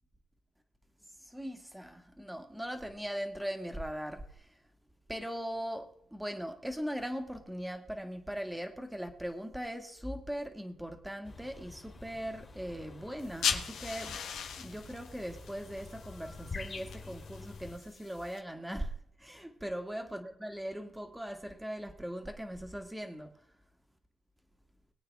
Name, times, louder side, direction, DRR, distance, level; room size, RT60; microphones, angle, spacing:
voice 1, 1.2-4.5 5.1-14.2 14.6-23.3, equal, 5° right, 5 dB, 2.0 m, -40 dB
sound 1, 11.2-17.8, left 3 dB, 35° left, 3.1 m, -47 dB
sound 2, 13.2-18.4, left 7 dB, 90° left, 1.5 m, -39 dB
22.5 x 8.7 x 3.6 m, 0.72 s
cardioid pair, 100°, 0 cm